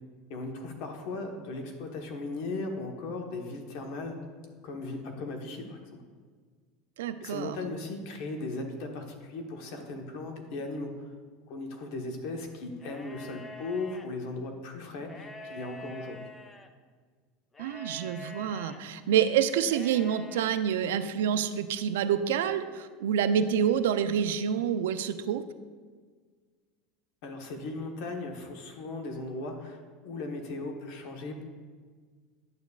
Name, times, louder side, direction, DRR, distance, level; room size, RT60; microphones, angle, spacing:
voice 1, 0.3-4.1 4.6-5.9 7.2-10.9 11.5-16.3 27.2-31.4, left 2 dB, 65° left, 4 dB, 1.1 m, -37 dB
voice 2, 7.0-7.6 17.6-25.4, right 8 dB, 85° right, 11 dB, 0.4 m, -27 dB
sound 1, 12.8-14.1 15.0-16.7 17.5-18.8 19.6-20.5, left 2 dB, 15° left, 0.5 m, -46 dB
10.5 x 7.0 x 2.4 m, 1.6 s
supercardioid pair, 115°, 0 cm